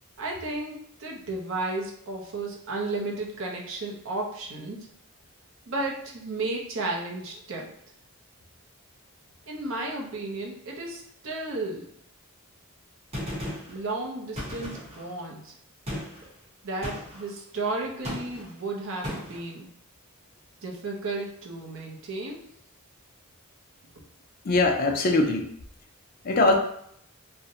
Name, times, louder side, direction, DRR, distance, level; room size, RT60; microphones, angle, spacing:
voice 1, 0.2-4.9 5.7-7.7 9.5-11.9 13.7-15.5 16.6-19.7 20.6-22.5, right 2 dB, 60° right, -1 dB, 0.5 m, -33 dB
Gunshot gunfire, 13.1-13.8 14.4-15.1 15.9-16.3 16.8-17.3 18.0-18.5 19.0-19.4, left 1 dB, 25° right, 0.9 m, -35 dB
voice 2, 24.4-25.5 26.2-26.6, left 2 dB, 40° left, 3 dB, 0.3 m, -21 dB
2.6 x 2.1 x 2.7 m, 0.68 s
head